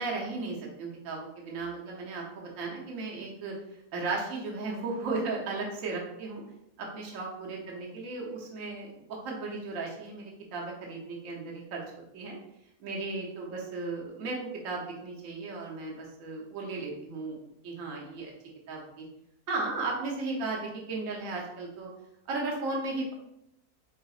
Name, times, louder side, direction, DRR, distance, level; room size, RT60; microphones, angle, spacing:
voice 1, 0.0-3.5 3.9-6.4 6.8-11.8 12.1-12.3 12.8-14.4 14.6-17.4 17.6-18.3 18.7-18.8 19.5-21.9 22.3-23.1, right 3 dB, 60° right, -2 dB, 1.2 m, -35 dB
3.9 x 3.8 x 2.4 m, 0.80 s
omnidirectional pair, 1.6 m